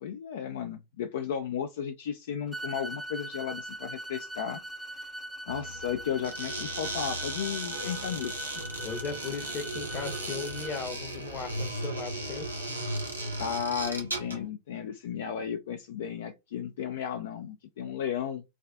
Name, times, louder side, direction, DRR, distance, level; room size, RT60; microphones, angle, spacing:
voice 1, 0.0-4.6 5.5-8.4 13.4-18.4, left 8 dB, 60° left, 0.4 m, -34 dB
sound 1, 2.5-10.8, right 1 dB, 5° right, 0.4 m, -41 dB
sound 2, 5.5-11.7, equal, 65° right, 0.5 m, -47 dB
sound 3, 6.2-14.5, right 1 dB, 80° right, 0.9 m, -36 dB
voice 2, 8.8-12.5, left 5 dB, 35° left, 0.9 m, -37 dB
4.8 x 2.4 x 2.2 m
figure-of-eight pair, 90°, 0 cm